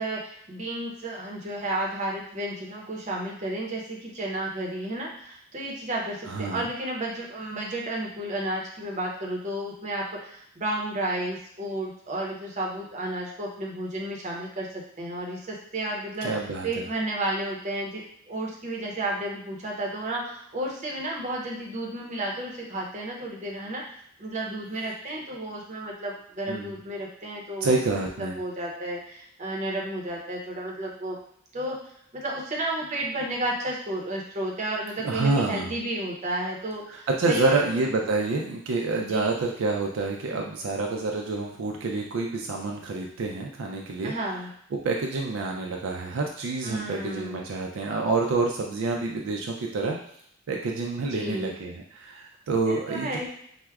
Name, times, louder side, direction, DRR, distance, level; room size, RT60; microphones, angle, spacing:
voice 1, 0.0-16.3 16.6-31.2 31.5-31.8 32.1-37.8 39.0-39.3 40.3-40.4 44.0-44.5 46.6-47.5 51.1-51.5 52.7-53.3, right 1 dB, 35° right, -2 dB, 0.6 m, -32 dB
voice 2, 6.3-6.7 16.2-16.8 26.5-26.8 27.6-28.4 35.0-35.7 36.9-44.1 44.7-50.0 50.5-53.3, right 3 dB, 70° right, 0 dB, 0.4 m, -28 dB
4.5 x 2.1 x 2.3 m, 0.69 s
head